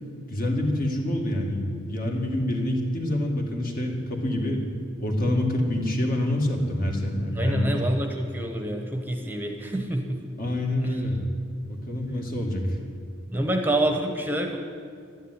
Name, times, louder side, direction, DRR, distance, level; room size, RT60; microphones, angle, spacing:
voice 1, 0.3-4.7 5.0-7.7 10.4-11.2 11.7-12.8, left 1 dB, 45° left, 1 dB, 2.1 m, -26 dB
voice 2, 7.3-10.2 10.8-11.0 11.8-11.9 13.3-14.6, right 1 dB, 10° right, 4 dB, 1.0 m, -27 dB
12.5 x 10.0 x 9.7 m, 2.2 s
head